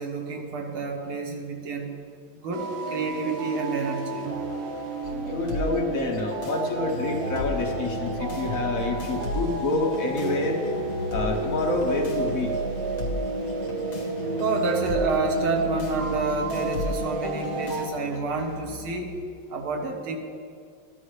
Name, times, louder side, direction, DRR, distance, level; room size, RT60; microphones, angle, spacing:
voice 1, 0.0-2.0 2.4-4.3 14.4-19.2 19.5-20.2, right 4 dB, 90° right, 2 dB, 2.1 m, -29 dB
sound 1, 2.5-17.9, right 2 dB, 65° right, 1.7 m, -32 dB
sound 2, 5.0-19.0, right 1 dB, 70° left, 2.1 m, -36 dB
voice 2, 5.2-10.6 11.1-12.5, left 2 dB, 50° left, 1 dB, 1.2 m, -27 dB
sound 3, 6.8-17.8, left 2 dB, 35° right, 2.8 m, -39 dB
14.0 x 12.0 x 3.2 m, 2.3 s
omnidirectional pair, 2.3 m